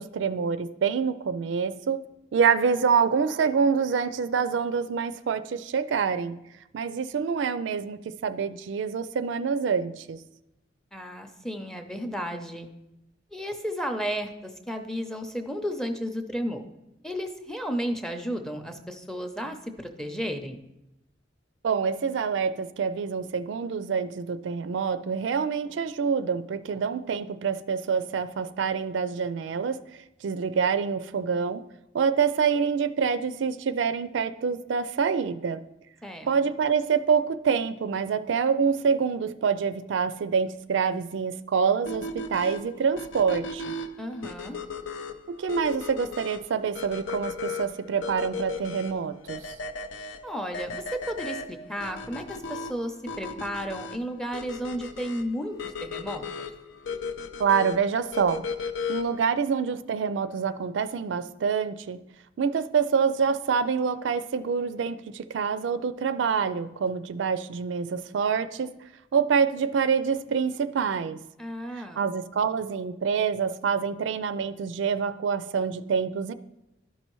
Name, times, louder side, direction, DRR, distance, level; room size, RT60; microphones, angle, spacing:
voice 1, 0.0-2.0 2.3-6.4 6.7-10.2 21.6-31.6 31.9-35.6 36.3-43.7 45.3-49.4 57.4-58.4 58.9-62.0 62.4-68.7 69.1-71.2 71.8-76.3, right 6 dB, 80° right, 12 dB, 0.4 m, -26 dB
voice 2, 10.9-12.7 13.3-16.6 17.0-20.6 36.0-36.3 44.0-44.6 50.2-56.5 71.4-72.0, equal, 5° left, 5 dB, 0.6 m, -33 dB
sound 1, 41.9-59.3, left 4 dB, 85° left, 0.5 m, -36 dB
12.0 x 5.4 x 3.0 m, 0.91 s
head